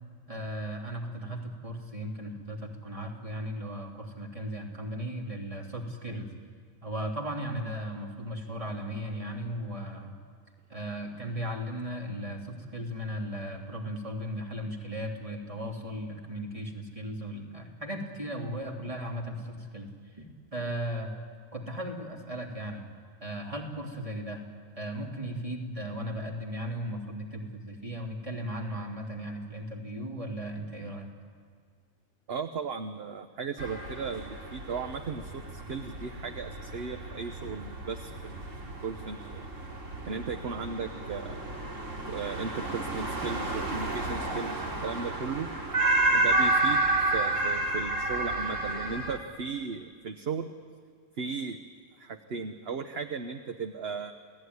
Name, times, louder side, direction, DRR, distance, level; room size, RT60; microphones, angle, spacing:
voice 1, 0.3-6.3 6.8-10.1 10.7-19.9 20.2-20.3 20.5-21.1 21.5-22.8 23.2-24.4 24.8-31.1, equal, 25° right, -1 dB, 3.1 m, -36 dB
voice 2, 32.3-39.5 40.0-41.4 42.1-45.5 46.1-46.8 47.1-50.5 51.2-51.6 52.0-54.1, right 5 dB, 55° right, 7 dB, 1.2 m, -36 dB
sound 1, 33.6-49.2, right 2 dB, 90° right, 2.9 m, -31 dB
29.0 x 17.5 x 9.6 m, 2.1 s
omnidirectional pair, 1.3 m